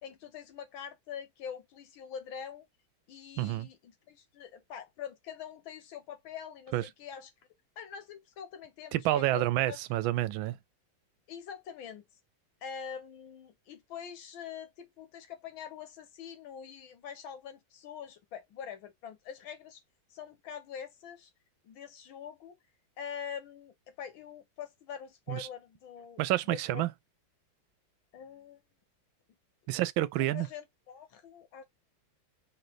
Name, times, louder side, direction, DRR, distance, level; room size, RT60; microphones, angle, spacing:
voice 1, 0.0-2.7 3.1-7.3 7.8-9.8 11.3-12.0 12.6-19.8 20.1-21.3 21.6-22.6 23.0-26.8 28.1-28.6 30.2-31.6, left 8 dB, 90° left, 1.8 m, -44 dB
voice 2, 3.4-3.7 6.7-6.8 8.9-10.6 25.3-25.5 26.2-26.9 29.7-30.5, right 15 dB, 85° right, 1.4 m, -29 dB
3.8 x 3.3 x 3.9 m
omnidirectional pair, 2.1 m